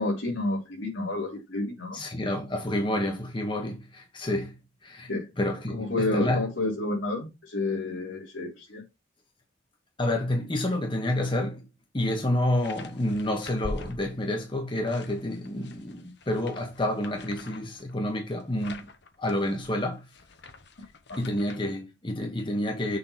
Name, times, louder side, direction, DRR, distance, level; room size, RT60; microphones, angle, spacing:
voice 1, 0.0-2.0 5.1-5.3 5.7-8.8 21.1-21.2 21.6-21.7, left 2 dB, 80° left, 3.7 m, -30 dB
voice 2, 1.9-4.6 4.8-5.1 5.4-6.4 10.0-11.6 11.9-18.9 19.2-20.1 21.2-23.0, left 1 dB, 25° left, 1.1 m, -29 dB
FX Paper moving but not folding, 12.5-14.5 14.9-21.6, left 2 dB, 60° left, 0.9 m, -44 dB
6.8 x 3.6 x 5.5 m
head